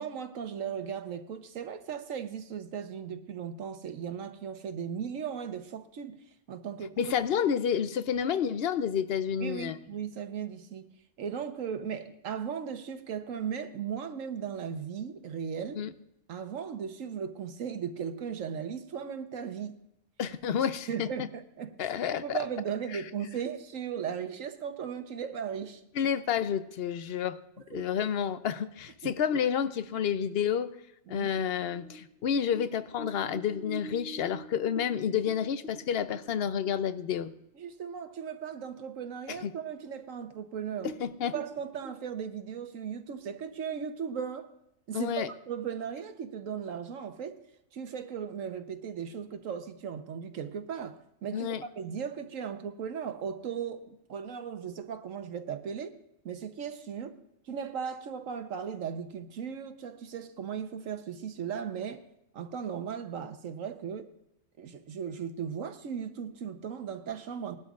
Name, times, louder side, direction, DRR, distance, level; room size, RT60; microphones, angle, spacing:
voice 1, 0.0-7.1 9.4-10.9 11.2-15.8 16.3-19.8 20.9-26.1 27.7-27.8 29.0-29.1 31.1-31.3 37.6-40.9 41.3-44.5 44.9-47.4 47.7-55.9 56.2-57.1 57.5-62.0 62.3-64.1 64.6-67.6, right 7 dB, 90° right, 8 dB, 1.3 m, -37 dB
voice 2, 7.0-9.8 15.8-15.9 20.2-21.3 21.8-22.4 22.9-23.0 26.0-27.4 27.7-30.7 31.1-37.3 39.3-39.5 41.0-41.3 44.9-45.3 51.3-51.6, left 8 dB, 60° left, 12 dB, 0.8 m, -30 dB
sound 1, 31.7-37.3 37.6-37.7 38.1-38.7 39.1-39.2 39.8-39.9 40.2-40.4 40.7-41.9, right 1 dB, 5° left, 2.5 m, -45 dB
20.0 x 12.0 x 2.4 m, 0.82 s
omnidirectional pair, 1.3 m